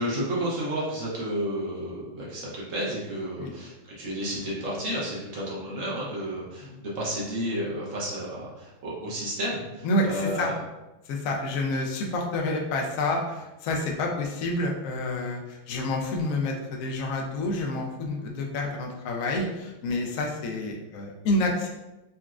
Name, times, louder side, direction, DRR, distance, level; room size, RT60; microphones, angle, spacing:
voice 1, 0.0-10.5, equal, 55° right, -6 dB, 1.0 m, -31 dB
voice 2, 9.8-10.5 11.0-21.7, left 2 dB, 80° left, 1 dB, 0.7 m, -28 dB
4.0 x 2.2 x 2.4 m, 1.0 s
omnidirectional pair, 2.0 m